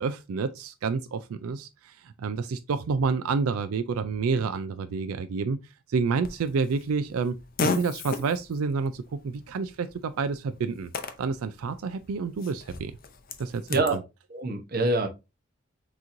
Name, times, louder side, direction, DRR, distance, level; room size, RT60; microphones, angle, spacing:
voice 1, 0.0-5.6 5.9-10.9 11.2-12.9 13.4-14.0, right 5 dB, 80° right, 0.4 m, -29 dB
Fart, 6.2-14.0, left 3 dB, 40° left, 0.6 m, -36 dB
voice 2, 13.7-14.0 14.3-15.1, right 2 dB, 40° right, 0.8 m, -25 dB
6.1 x 3.0 x 2.6 m
head